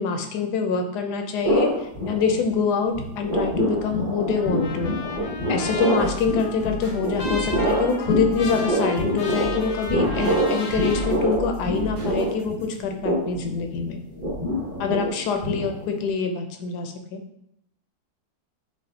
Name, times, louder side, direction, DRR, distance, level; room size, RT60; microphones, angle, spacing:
voice 1, 0.0-4.9 5.5-14.0 14.8-17.2, left 5 dB, 85° left, 5 dB, 1.1 m, -25 dB
sound 1, 1.4-2.7 2.9-16.1, equal, 30° right, 0.7 m, -26 dB
Trumpet, 4.3-11.1, left 3 dB, 65° left, 0.7 m, -36 dB
sound 2, 6.0-12.8, left 1 dB, 75° right, 2.0 m, -37 dB
4.9 x 2.4 x 2.7 m, 0.78 s
omnidirectional pair, 1.7 m